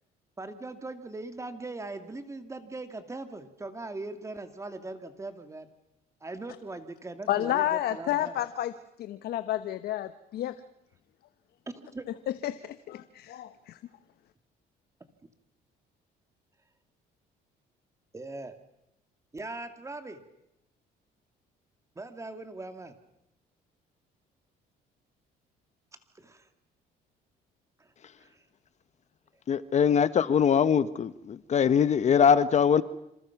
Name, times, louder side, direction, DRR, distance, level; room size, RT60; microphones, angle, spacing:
voice 1, 0.4-5.7 6.2-8.4 11.7-12.1 18.1-18.5 19.3-20.2 22.0-22.9 26.1-26.5 27.8-28.5 29.5-29.6, right 2 dB, 15° right, 8 dB, 2.3 m, -40 dB
voice 2, 7.3-8.7 9.0-10.6 12.3-13.8, left 12 dB, 70° left, 12 dB, 1.1 m, -30 dB
voice 3, 29.5-32.8, left 7 dB, 40° left, 15 dB, 1.0 m, -22 dB
27.5 x 27.0 x 6.0 m, 0.83 s
cardioid pair, 110°, 17 cm